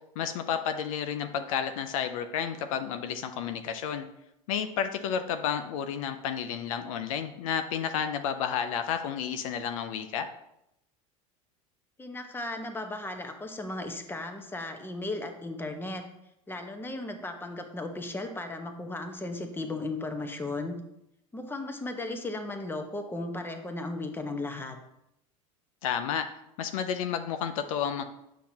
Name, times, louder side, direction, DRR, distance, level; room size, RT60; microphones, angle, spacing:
voice 1, 0.2-4.1 4.5-10.3 25.8-26.3 26.6-28.0, left 8 dB, 70° left, 8 dB, 0.6 m, -31 dB
voice 2, 12.0-16.0 16.5-20.8 21.3-24.8, left 2 dB, 10° left, 5 dB, 1.1 m, -36 dB
8.2 x 6.0 x 2.9 m, 0.82 s
hypercardioid pair, 85°, 18 cm